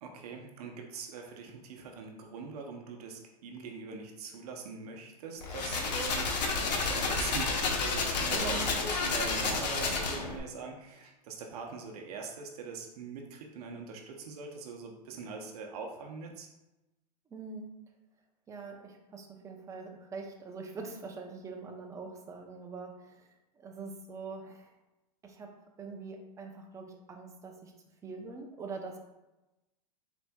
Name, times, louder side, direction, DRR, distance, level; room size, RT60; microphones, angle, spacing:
voice 1, 0.0-16.5, right 4 dB, 65° right, 2 dB, 0.7 m, -42 dB
sound 1, 5.4-10.4, left 3 dB, 90° left, 0.9 m, -30 dB
voice 2, 8.3-8.7 17.3-17.8 18.5-24.7 25.2-27.7 28.0-29.0, right 4 dB, 15° right, 2 dB, 0.6 m, -44 dB
4.4 x 4.2 x 2.3 m, 1.0 s
hypercardioid pair, 125°, 21 cm